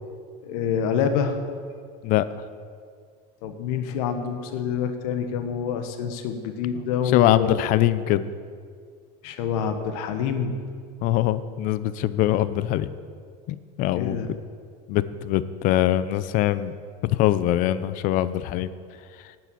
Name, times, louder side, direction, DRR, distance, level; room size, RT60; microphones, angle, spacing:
voice 1, 0.4-1.4 3.4-7.6 9.2-10.6 14.0-14.3, left 7 dB, 65° left, 7 dB, 1.2 m, -27 dB
voice 2, 2.0-2.4 6.7-8.3 11.0-12.9 13.5-14.3 14.9-16.7 17.0-18.7 19.2-19.3, left 13 dB, 40° left, 15 dB, 0.5 m, -23 dB
9.4 x 7.6 x 8.2 m, 2.1 s
supercardioid pair, 145°, 21 cm